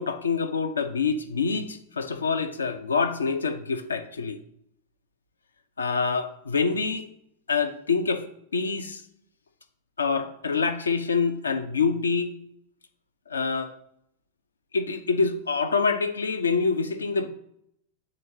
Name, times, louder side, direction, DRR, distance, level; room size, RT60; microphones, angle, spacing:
voice 1, 0.0-4.4 5.8-7.0 7.5-8.2 8.5-9.0 10.0-12.3 13.3-13.7 14.7-17.3, left 5 dB, 75° left, 9 dB, 0.6 m, -26 dB
9.8 x 3.8 x 2.7 m, 0.73 s
figure-of-eight pair, 90°, 0 cm